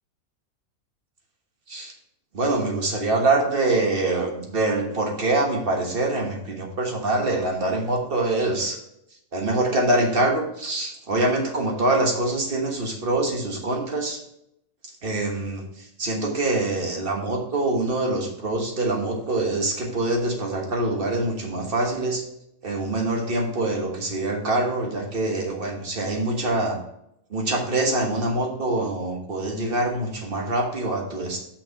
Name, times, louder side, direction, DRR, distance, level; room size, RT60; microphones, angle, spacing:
voice 1, 2.3-8.8 9.3-14.2 15.0-22.2 22.6-26.8 27.3-31.4, right 2 dB, 40° right, 1 dB, 1.5 m, -24 dB
6.1 x 5.9 x 4.7 m, 0.78 s
omnidirectional pair, 1.5 m